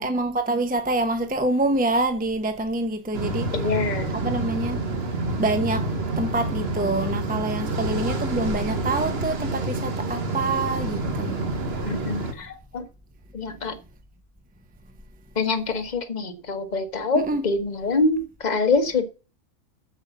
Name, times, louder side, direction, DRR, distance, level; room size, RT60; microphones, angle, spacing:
voice 1, 0.0-3.7 4.1-4.8 5.4-5.9 6.2-11.3 17.1-17.5, right 2 dB, 5° right, 0.9 m, -26 dB
sound 1, 3.1-12.3, right 2 dB, 45° right, 1.4 m, -28 dB
voice 2, 3.5-4.1 11.9-12.8 13.3-13.7 15.4-19.1, left 3 dB, 30° left, 1.2 m, -25 dB
8.0 x 7.4 x 6.9 m
omnidirectional pair, 1.5 m